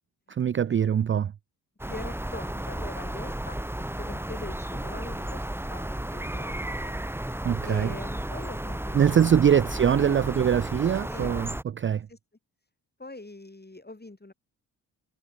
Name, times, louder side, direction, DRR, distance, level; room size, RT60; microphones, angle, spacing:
voice 1, 0.3-1.3 7.4-7.9 8.9-12.1, right 8 dB, 30° right, 0.4 m, -23 dB
sound 1, 1.8-11.6, right 1 dB, 5° right, 1.3 m, -33 dB
voice 2, 1.9-3.6 4.0-6.9 7.7-9.2 9.9-10.2 11.1-11.3 12.1-12.2 13.0-14.3, left 2 dB, 20° left, 7.7 m, -42 dB
supercardioid pair, 45°, 43 cm